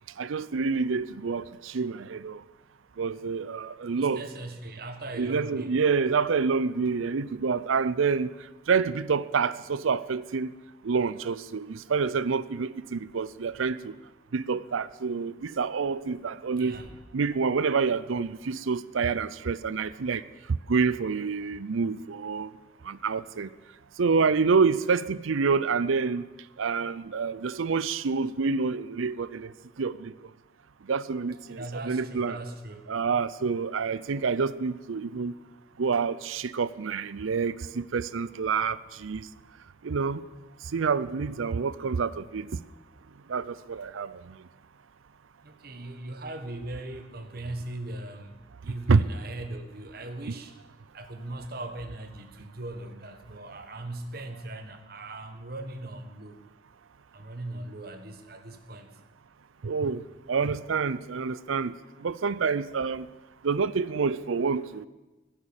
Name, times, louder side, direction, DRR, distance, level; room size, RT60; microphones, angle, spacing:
voice 1, 0.2-2.4 3.0-4.2 5.2-8.3 8.7-10.5 10.8-13.9 14.3-16.8 17.1-20.2 20.7-22.5 22.8-23.5 24.0-26.3 26.6-29.5 29.8-30.1 30.9-32.3 32.9-35.3 35.8-39.3 39.8-40.2 40.7-42.6 43.3-44.2 48.9-49.0 59.6-61.7 62.0-63.1 63.4-64.9, right 5 dB, 85° right, 0.5 m, -27 dB
voice 2, 4.0-5.8 16.6-16.9 31.5-32.8 45.4-50.5 50.9-56.4 57.1-58.9, right 2 dB, 50° right, 1.5 m, -39 dB
Gunshot gunfire / Fireworks / Boom, 16.7-21.5, equal, 15° right, 3.8 m, -59 dB
16.0 x 10.5 x 7.3 m
head